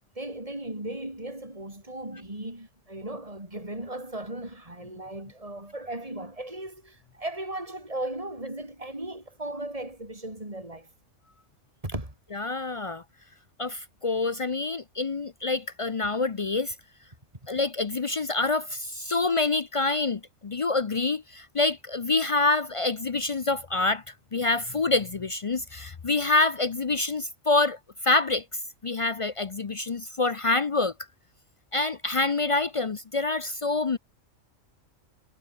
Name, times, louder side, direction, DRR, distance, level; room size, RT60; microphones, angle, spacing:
voice 1, 0.2-10.9 11.8-12.1, right 1 dB, 25° right, 5.8 m, -37 dB
voice 2, 12.3-13.0 13.6-16.7 17.5-24.0 24.3-27.8 28.0-28.4 28.8-30.9 31.7-34.0, left 3 dB, 45° left, 0.4 m, -26 dB
omnidirectional pair, 1.4 m